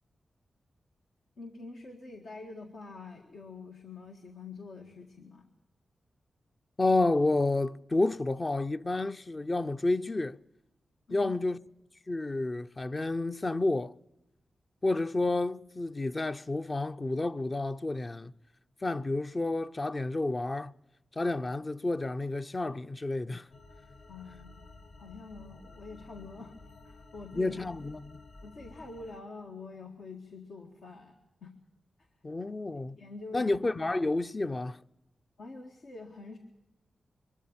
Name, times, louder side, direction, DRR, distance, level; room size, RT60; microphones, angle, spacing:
voice 1, 1.4-5.5 11.1-11.3 24.1-26.6 26.8-27.6 28.4-31.1 31.4-31.5 32.7-33.6 35.4-36.4, left 3 dB, 80° left, 1.9 m, -46 dB
voice 2, 6.8-10.4 11.1-11.6 12.1-13.9 14.8-18.3 18.8-20.7 21.1-23.5 27.3-28.2 32.2-33.0 33.3-34.8, left 2 dB, 35° left, 0.6 m, -30 dB
sound 1, 23.5-29.2, left 3 dB, 65° left, 1.3 m, -52 dB
23.0 x 13.0 x 8.7 m
cardioid pair, 60°, 0 cm